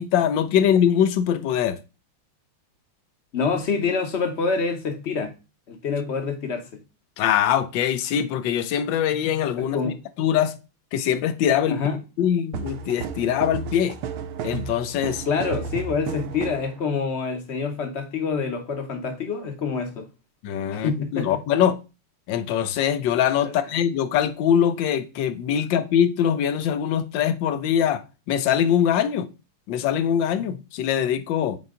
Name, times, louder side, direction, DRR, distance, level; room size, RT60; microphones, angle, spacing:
voice 1, 0.0-1.8 7.2-9.9 10.2-10.6 10.9-11.8 12.2-14.0 14.4-15.3 20.4-21.8 22.3-29.3 29.7-31.6, left 9 dB, 75° left, 1.2 m, -22 dB
voice 2, 3.3-5.3 5.7-6.8 9.6-10.0 11.7-12.0 15.3-20.1 20.7-21.4 23.4-23.5, left 5 dB, 45° left, 1.0 m, -26 dB
sound 1, 12.5-16.7, right 7 dB, 85° right, 1.5 m, -33 dB
5.6 x 4.6 x 3.7 m
omnidirectional pair, 2.3 m